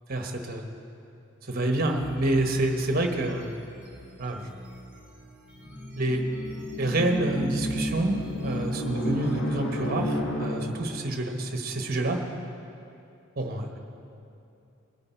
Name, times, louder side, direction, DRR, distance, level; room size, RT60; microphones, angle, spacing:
voice 1, 0.1-0.6 1.5-3.5 4.2-4.6 6.0-6.2 6.8-12.2 13.4-13.8, right 1 dB, 45° right, 3 dB, 1.2 m, -27 dB
sound 1, 2.0-9.4, right 1 dB, 5° right, 3.0 m, -47 dB
sound 2, 5.5-11.1, equal, 55° left, 1.3 m, -32 dB
20.5 x 8.8 x 4.5 m, 2.7 s
head